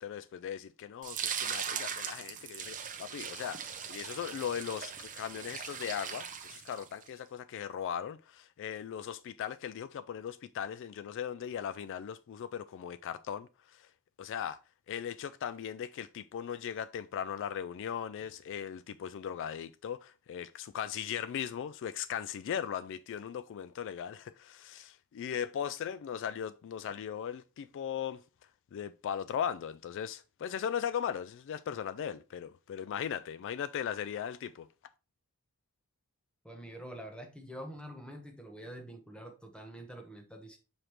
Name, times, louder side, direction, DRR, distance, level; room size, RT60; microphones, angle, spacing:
voice 1, 0.0-13.9 14.2-14.6 14.9-28.2 28.7-34.7, left 8 dB, 60° left, 0.3 m, -38 dB
sound 1, 1.0-7.1, right 7 dB, 35° right, 0.8 m, -39 dB
voice 2, 36.4-40.6, equal, 5° left, 1.1 m, -46 dB
7.2 x 5.0 x 3.1 m
head